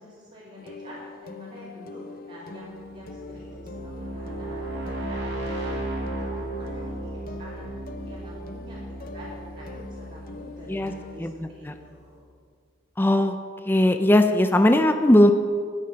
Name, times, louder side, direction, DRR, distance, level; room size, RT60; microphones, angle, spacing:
voice 1, 0.0-7.7 8.0-12.2, equal, 40° right, -8 dB, 2.8 m, -46 dB
sound 1, 0.6-11.2, left 3 dB, 45° left, 0.7 m, -43 dB
sound 2, 2.7-11.5, right 1 dB, 60° right, 3.5 m, -35 dB
voice 2, 10.7-11.7 13.0-13.4 13.6-15.3, left 1 dB, 10° left, 7 dB, 0.5 m, -19 dB
12.5 x 9.7 x 5.8 m, 2.1 s
head